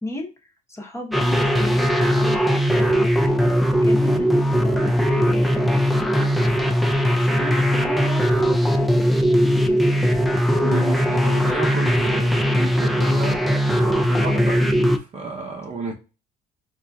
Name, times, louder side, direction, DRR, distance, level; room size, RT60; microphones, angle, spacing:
voice 1, 0.0-6.9 7.2-10.2, left 1 dB, 15° left, 0.8 m, -35 dB
sound 1, 1.1-15.0, equal, ahead, 0.4 m, -19 dB
voice 2, 10.5-13.4 13.7-15.9, right 3 dB, 40° right, 0.7 m, -31 dB
4.2 x 2.6 x 2.3 m
cardioid pair, 110°, 17 cm